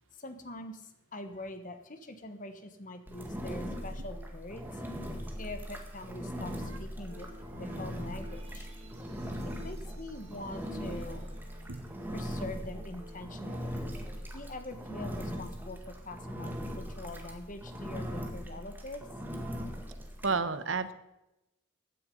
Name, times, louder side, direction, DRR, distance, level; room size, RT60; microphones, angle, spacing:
voice 1, 0.2-0.8 1.1-4.7 5.4-6.5 6.8-7.3 7.5-8.7 9.6-11.2 12.1-13.7 14.3-19.0, left 2 dB, 40° left, 9 dB, 1.4 m, -43 dB
Engine, 3.1-20.4, equal, 10° right, 1.8 m, -40 dB
sound 1, 7.1-14.2, right 1 dB, 35° right, 2.4 m, -53 dB
voice 2, 20.2-20.9, right 4 dB, 80° right, 13 dB, 1.0 m, -30 dB
15.5 x 9.8 x 5.4 m, 0.91 s
head